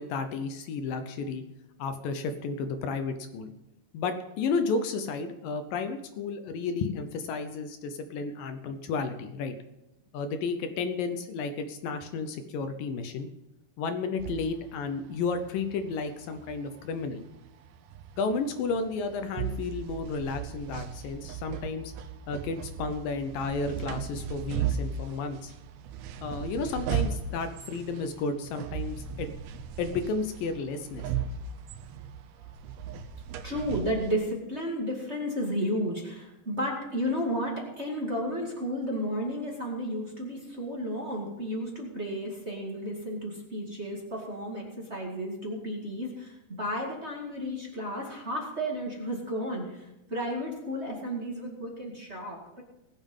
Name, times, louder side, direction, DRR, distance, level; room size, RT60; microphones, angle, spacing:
voice 1, 0.0-1.4 1.8-3.5 3.9-9.6 10.1-13.3 13.8-17.2 18.2-21.9 22.3-25.5 26.2-29.3 29.8-31.0, left 4 dB, 75° left, 8 dB, 2.1 m, -32 dB
sound 1, 14.2-34.1, right 7 dB, 75° right, 2.4 m, -37 dB
voice 2, 33.4-44.6 44.9-52.6, equal, 30° right, -2 dB, 1.2 m, -33 dB
20.0 x 7.3 x 5.4 m, 0.95 s
omnidirectional pair, 4.9 m